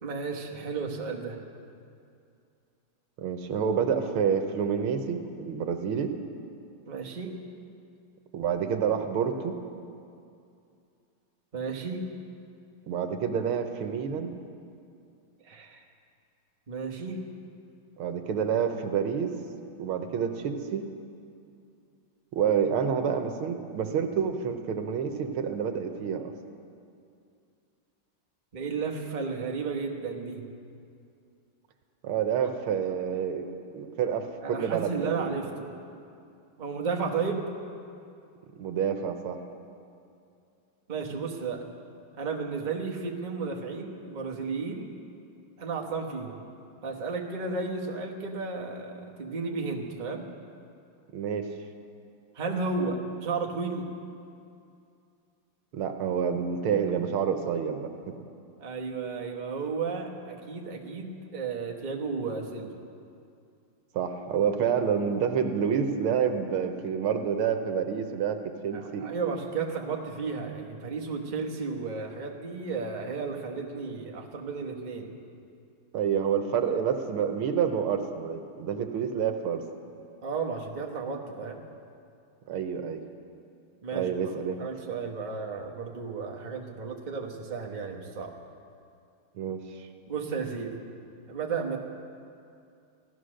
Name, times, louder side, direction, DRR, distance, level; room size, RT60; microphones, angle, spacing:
voice 1, 0.0-1.4 6.9-7.3 11.5-12.1 15.4-15.8 16.7-17.3 28.5-30.4 34.4-35.7 36.6-37.5 40.9-41.6 42.2-44.9 45.6-46.4 46.8-50.3 52.3-53.9 58.6-62.7 68.7-75.1 80.2-81.6 83.8-88.3 90.1-90.8 91.3-91.8, right 4 dB, 25° right, 1 dB, 1.1 m, -33 dB
voice 2, 3.2-6.1 8.3-9.6 12.9-14.4 18.0-19.3 19.8-20.9 22.3-26.3 32.0-33.5 33.7-35.4 38.6-39.4 51.1-51.5 55.7-57.9 63.9-69.1 75.9-79.6 82.5-83.0 83.9-84.6 89.4-89.9, right 7 dB, 80° right, 6 dB, 1.8 m, -28 dB
16.0 x 13.0 x 6.4 m, 2.5 s
omnidirectional pair, 2.3 m